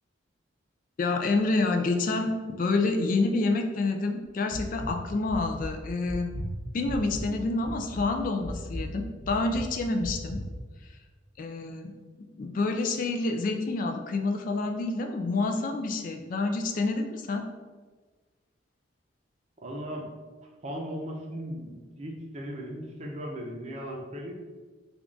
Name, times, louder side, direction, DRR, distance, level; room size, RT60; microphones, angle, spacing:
voice 1, 1.0-6.4 6.7-10.4 11.4-11.9 12.2-17.4, left 3 dB, 45° left, 4 dB, 0.3 m, -28 dB
sound 1, 4.5-4.9 5.3-5.7 6.0-7.3 7.6-8.0 8.4-8.8 9.2-9.6 10.0-10.4, left 1 dB, 5° left, 0.6 m, -35 dB
voice 2, 19.6-20.1 20.6-24.3, equal, 35° right, 0 dB, 0.6 m, -37 dB
3.5 x 2.4 x 3.7 m, 1.4 s
head